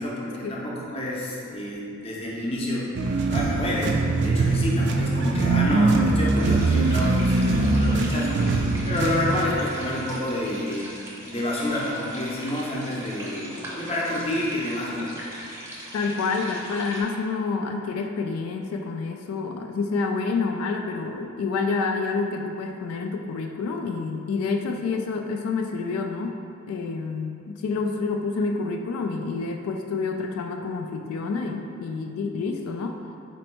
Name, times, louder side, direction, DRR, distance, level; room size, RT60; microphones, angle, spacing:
voice 1, 0.0-2.9 3.3-10.9 11.3-15.1, left 1 dB, 30° left, -5 dB, 0.6 m, -29 dB
sound 1, 3.0-9.5, right 3 dB, 55° right, 0.3 m, -22 dB
sound 2, 6.3-17.0, right 1 dB, 15° right, 0.6 m, -40 dB
voice 2, 15.9-26.4 26.7-33.0, left 4 dB, 90° left, 7 dB, 0.3 m, -28 dB
4.2 x 2.6 x 4.3 m, 2.6 s
head